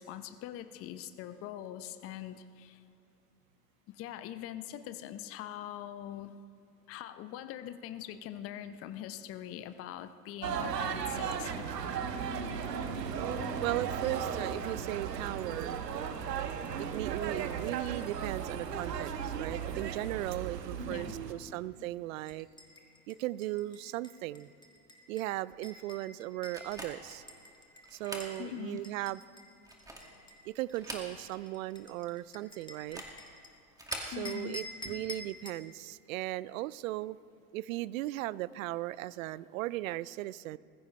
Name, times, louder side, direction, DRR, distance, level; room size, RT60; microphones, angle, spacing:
voice 1, 0.0-2.8 3.9-6.4 6.9-11.7 19.7-19.9 20.8-21.9 28.4-28.9 34.1-34.6, left 11 dB, 30° left, 11 dB, 0.7 m, -43 dB
sound 1, 10.4-21.3, right 7 dB, 80° right, 1.2 m, -36 dB
voice 2, 13.6-15.9 16.8-22.5 23.1-24.5 25.1-27.2 27.9-29.2 30.5-33.0 34.0-37.2 37.5-40.6, right 16 dB, 55° right, 20 dB, 0.5 m, -37 dB
sound 2, 22.3-28.4 28.8-33.5 33.9-35.6, left 1 dB, 10° left, 1.6 m, -48 dB
sound 3, 26.5-27.2 27.9-28.3 28.8-28.9 29.6-30.2 30.7-31.5 31.7-31.8 32.8-33.2 33.7-34.2, right 1 dB, 5° right, 2.1 m, -43 dB
20.0 x 15.0 x 3.3 m, 2.5 s
hypercardioid pair, 100°, 48 cm